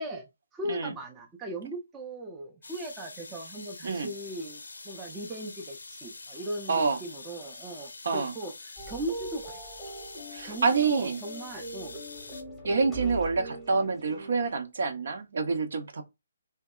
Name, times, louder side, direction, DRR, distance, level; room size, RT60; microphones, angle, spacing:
voice 1, 0.0-9.6 10.4-11.9, right 1 dB, 15° right, 0.5 m, -38 dB
sound 1, 2.6-12.4, left 3 dB, 85° left, 0.5 m, -45 dB
sound 2, 8.8-14.3, right 2 dB, 5° left, 0.9 m, -41 dB
voice 2, 10.3-11.2 12.6-16.0, right 4 dB, 65° right, 0.6 m, -27 dB
2.6 x 2.2 x 2.2 m
hypercardioid pair, 150°, 0 cm